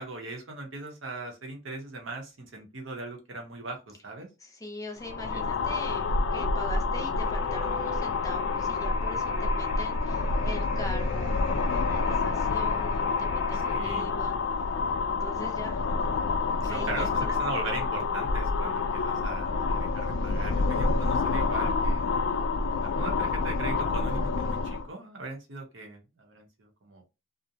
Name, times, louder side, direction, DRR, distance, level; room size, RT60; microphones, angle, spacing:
voice 1, 0.0-4.3 5.3-5.4 13.7-14.1 16.6-22.1 23.0-27.0, right 3 dB, 70° right, 0.8 m, -39 dB
voice 2, 4.4-14.7 15.1-15.9 16.6-17.4, left 1 dB, 15° left, 0.6 m, -41 dB
sound 1, 5.0-24.9, left 4 dB, 65° left, 0.3 m, -28 dB
sound 2, 7.2-13.8, right 1 dB, 15° right, 0.8 m, -45 dB
2.5 x 2.1 x 2.7 m
head